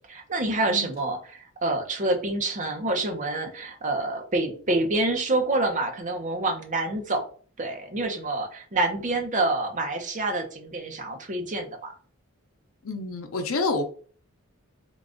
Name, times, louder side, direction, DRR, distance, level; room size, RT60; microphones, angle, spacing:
voice 1, 0.1-7.2 7.6-11.9, right 2 dB, 35° right, 0.8 m, -27 dB
voice 2, 12.8-13.8, left 3 dB, 75° left, 0.7 m, -28 dB
3.8 x 2.4 x 3.7 m
head